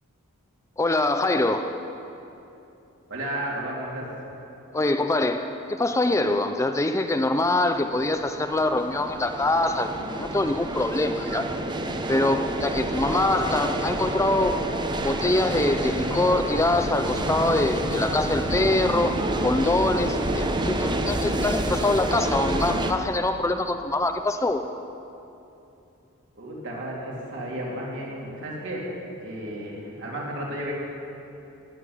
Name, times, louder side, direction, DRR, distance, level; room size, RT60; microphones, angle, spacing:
voice 1, 0.8-1.8 4.7-9.9 10.2-11.5 12.1-14.6 15.0-24.7, left 2 dB, 15° left, 7 dB, 0.5 m, -24 dB
voice 2, 3.1-4.1 26.4-28.9 29.2-30.7, right 1 dB, 60° right, -4 dB, 3.5 m, -33 dB
sound 1, 7.8-22.9, right 1 dB, 20° right, 0.8 m, -28 dB
17.5 x 7.9 x 9.7 m, 2.8 s
head